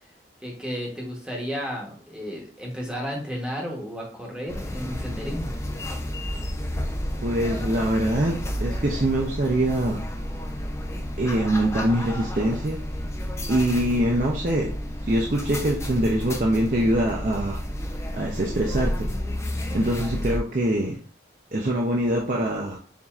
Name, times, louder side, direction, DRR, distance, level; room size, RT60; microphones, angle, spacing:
voice 1, 0.4-5.5, equal, 5° right, -1 dB, 1.0 m, -33 dB
sound 1, 4.5-20.4, equal, 15° left, 0.5 m, -31 dB
voice 2, 7.2-8.3 8.6-10.0 11.2-12.8 13.5-14.7 15.0-17.6 18.1-19.1 19.7-21.0 21.5-22.8, right 1 dB, 45° right, -1 dB, 0.6 m, -23 dB
7.2 x 2.7 x 2.4 m, 0.43 s
head